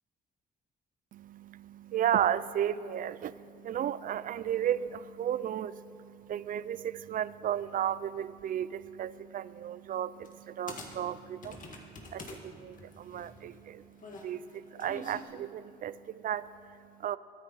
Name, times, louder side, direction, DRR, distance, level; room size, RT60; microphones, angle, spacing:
voice 1, 1.1-17.2, right 10 dB, 55° right, 17 dB, 0.4 m, -34 dB
sound 1, 10.3-10.4 10.7-12.4 12.7-15.2, left 3 dB, 50° left, 1.8 m, -46 dB
21.5 x 10.0 x 4.0 m, 2.6 s
cardioid pair, 100°, 17 cm